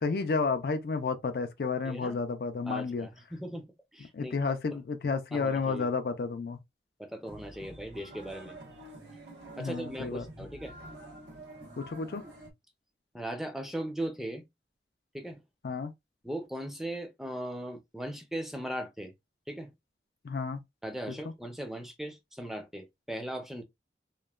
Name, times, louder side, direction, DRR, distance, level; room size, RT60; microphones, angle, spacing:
voice 1, 0.0-3.1 4.1-6.6 9.6-10.3 11.8-12.2 15.6-15.9 20.2-20.6, left 4 dB, 60° left, 0.4 m, -31 dB
voice 2, 1.8-2.2 2.7-3.7 3.9-4.3 4.7-4.8 5.3-5.9 7.0-8.6 9.6-10.7 13.1-14.4 15.1-15.4 16.2-19.1 19.5-19.7 20.8-23.6, right 1 dB, ahead, 0.5 m, -38 dB
sound 1, 7.2-12.5, right 1 dB, 90° right, 1.0 m, -48 dB
3.0 x 2.2 x 2.2 m
head